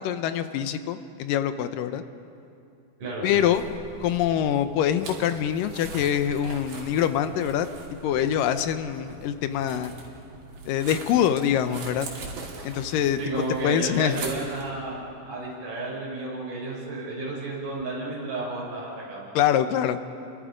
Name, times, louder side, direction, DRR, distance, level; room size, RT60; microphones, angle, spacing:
voice 1, 0.0-2.0 3.2-3.6 4.0-7.7 8.0-9.9 10.7-12.1 12.6-13.2 13.6-14.2 19.4-20.0, left 10 dB, 75° left, 10 dB, 2.2 m, -24 dB
voice 2, 3.0-3.4 13.2-19.3, right 2 dB, 60° right, -6 dB, 7.3 m, -32 dB
sound 1, 3.3-14.7, right 3 dB, 90° right, 4.5 m, -42 dB
29.5 x 23.0 x 5.1 m, 2.6 s
omnidirectional pair, 4.2 m